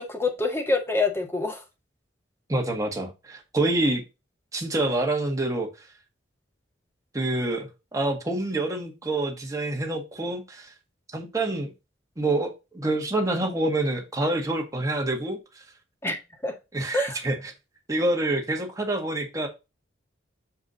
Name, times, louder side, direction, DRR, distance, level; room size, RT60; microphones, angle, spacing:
voice 1, 0.0-1.6 16.0-16.2 16.4-16.5 16.9-17.2, left 2 dB, 15° left, 1.6 m, -26 dB
voice 2, 2.5-4.0 4.5-5.7 7.1-10.7 11.1-11.7 12.2-15.4 16.7-17.5 17.9-19.5, right 2 dB, 20° right, 1.8 m, -27 dB
7.3 x 4.8 x 4.0 m
head